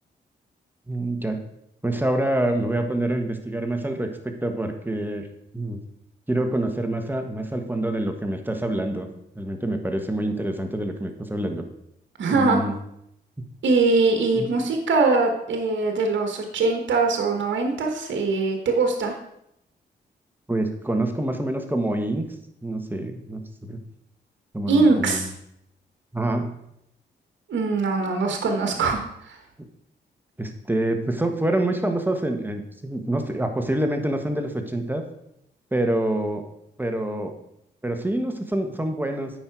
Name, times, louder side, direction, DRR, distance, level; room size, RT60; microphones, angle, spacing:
voice 1, 0.9-1.4 1.8-5.3 5.5-5.8 6.3-9.1 9.3-11.6 12.3-12.7 14.3-14.5 20.5-22.3 22.6-23.8 24.5-25.3 26.1-26.5 30.4-35.0 35.7-36.4 36.8-37.3 37.8-39.3, right 1 dB, 10° right, 5 dB, 1.5 m, -26 dB
voice 2, 12.2-12.6 13.6-19.1 24.7-25.3 27.5-29.4, right 3 dB, 75° right, 4 dB, 1.3 m, -22 dB
8.8 x 5.7 x 4.7 m, 0.78 s
cardioid pair, 55°, 19 cm